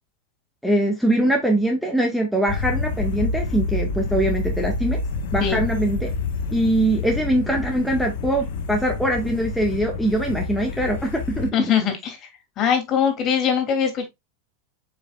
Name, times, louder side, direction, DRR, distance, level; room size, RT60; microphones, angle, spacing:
voice 1, 0.6-5.0 5.3-6.1 6.5-11.6, right 1 dB, ahead, 1.6 m, -22 dB
sound 1, 2.5-11.5, left 3 dB, 70° left, 1.2 m, -28 dB
voice 2, 11.5-12.2 12.6-14.1, left 8 dB, 40° left, 3.0 m, -21 dB
7.2 x 5.5 x 2.4 m
hypercardioid pair, 120°, 0 cm